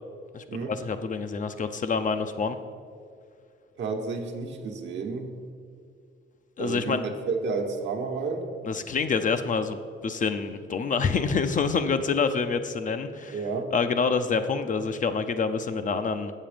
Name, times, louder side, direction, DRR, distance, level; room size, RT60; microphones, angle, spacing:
voice 1, 0.3-2.6 6.6-7.0 8.6-16.3, left 5 dB, 40° left, 9 dB, 0.5 m, -27 dB
voice 2, 3.8-5.3 6.6-7.0 7.3-8.4 13.3-13.7, right 4 dB, 65° right, 3 dB, 1.1 m, -31 dB
7.5 x 6.9 x 5.0 m, 2.3 s
cardioid pair, 90°, 20 cm